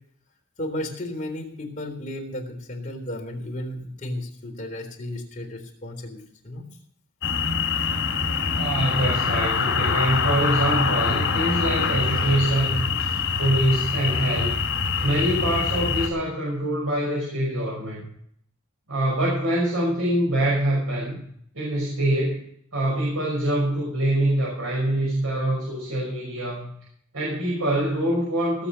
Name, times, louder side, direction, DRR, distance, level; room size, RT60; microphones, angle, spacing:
voice 1, 0.6-6.7, left 1 dB, 40° left, 1 dB, 3.9 m, -34 dB
sound 1, 7.2-16.1, left 5 dB, 60° left, 3.2 m, -24 dB
voice 2, 8.5-12.9 13.4-14.5 15.0-18.0 18.9-21.2 21.5-22.4 22.7-26.7 27.1-28.7, right 1 dB, 80° right, -4 dB, 5.9 m, -24 dB
18.0 x 8.3 x 5.7 m, 0.66 s
head